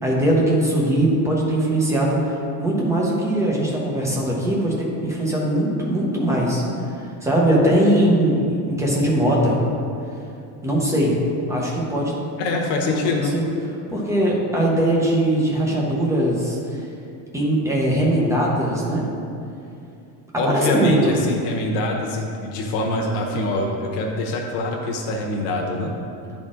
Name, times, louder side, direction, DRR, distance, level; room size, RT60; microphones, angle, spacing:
voice 1, 0.0-6.6 7.2-9.6 10.6-11.1 11.5-12.1 12.9-13.4 13.9-16.9 17.3-19.1 20.5-21.1, right 1 dB, 5° right, -4 dB, 0.9 m, -20 dB
voice 2, 12.4-13.3 20.4-25.9, left 2 dB, 85° left, 1 dB, 1.0 m, -24 dB
10.0 x 4.3 x 3.7 m, 2.6 s
cardioid pair, 165°, 45 cm